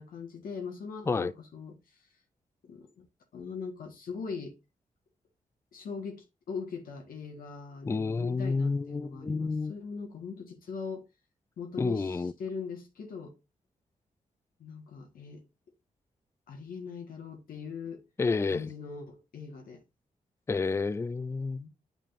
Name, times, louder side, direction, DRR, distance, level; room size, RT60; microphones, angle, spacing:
voice 1, 0.0-1.8 2.6-3.0 3.3-4.5 5.7-11.0 11.6-13.3 14.6-15.4 16.5-18.0 18.5-19.8 21.5-21.7, left 5 dB, 85° left, 1.6 m, -40 dB
voice 2, 7.8-9.7 11.8-12.3 18.2-18.7 20.5-21.6, left 4 dB, 20° left, 0.3 m, -29 dB
8.8 x 5.0 x 2.6 m
cardioid pair, 95°, 15 cm